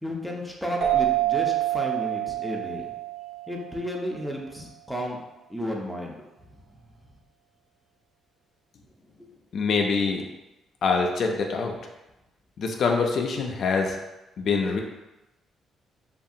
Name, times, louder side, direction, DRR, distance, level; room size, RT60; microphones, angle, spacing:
voice 1, 0.0-2.9 3.5-5.2 5.5-6.1 6.5-6.8 9.2-9.3, equal, ahead, -1 dB, 0.5 m, -33 dB
sound 1, 0.8-4.1, right 13 dB, 55° right, 0.9 m, -27 dB
voice 2, 9.5-10.2 10.8-11.8 12.6-14.0 14.4-14.8, left 4 dB, 60° left, 2 dB, 0.3 m, -24 dB
2.7 x 2.4 x 2.6 m, 0.99 s
cardioid pair, 90°, 0 cm